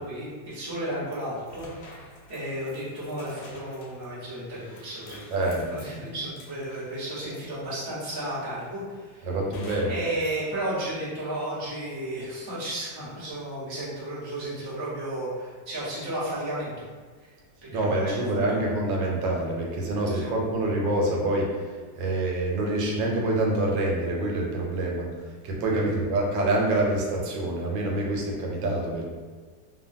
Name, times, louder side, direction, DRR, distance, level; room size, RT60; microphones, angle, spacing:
voice 1, 0.0-5.2 5.7-9.3 9.8-16.7 17.2-17.3 17.7-18.8 20.1-20.3 25.7-25.8, right 1 dB, 35° right, -9 dB, 0.3 m, -33 dB
sound 1, 1.1-7.7 8.2-8.8 9.5-10.5, left 1 dB, 70° left, 1.1 m, -49 dB
voice 2, 5.3-5.6 9.2-10.0 17.7-21.7 21.9-25.1 25.4-29.0, right 2 dB, 80° right, -1 dB, 1.3 m, -26 dB
3.0 x 2.1 x 2.6 m, 1.5 s
omnidirectional pair, 2.0 m